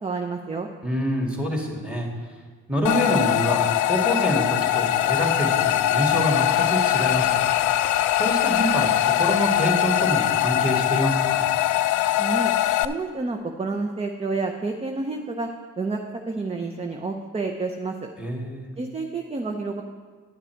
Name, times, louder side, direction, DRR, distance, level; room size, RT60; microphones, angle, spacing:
voice 1, 0.0-0.7 12.2-12.5 12.8-15.5 15.8-16.0 16.3-18.1 18.8-19.8, right 3 dB, 20° right, 4 dB, 0.6 m, -29 dB
voice 2, 0.8-2.1 2.7-7.4 8.2-11.5 18.2-18.7, equal, 5° right, 0 dB, 2.1 m, -26 dB
sound 1, 2.8-12.8, left 12 dB, 75° left, 0.4 m, -22 dB
10.0 x 7.4 x 4.5 m, 1.5 s
cardioid pair, 90°, 30 cm